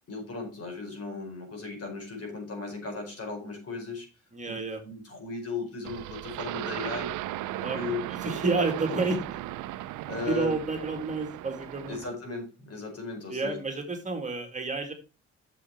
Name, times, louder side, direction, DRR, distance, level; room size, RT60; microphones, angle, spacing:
voice 1, 0.1-4.1 4.5-7.1 7.7-8.6 8.9-9.1 10.1-10.5 11.9-13.5, left 4 dB, 50° left, 2 dB, 5.0 m, -36 dB
voice 2, 4.3-4.8 7.5-7.8 8.1-9.2 10.3-12.0 13.3-14.9, right 3 dB, 25° right, 4 dB, 2.2 m, -30 dB
sound 1, 5.8-12.2, right 15 dB, 85° right, 0.6 m, -36 dB
8.3 x 6.8 x 4.5 m, 0.30 s
cardioid pair, 90°, 30 cm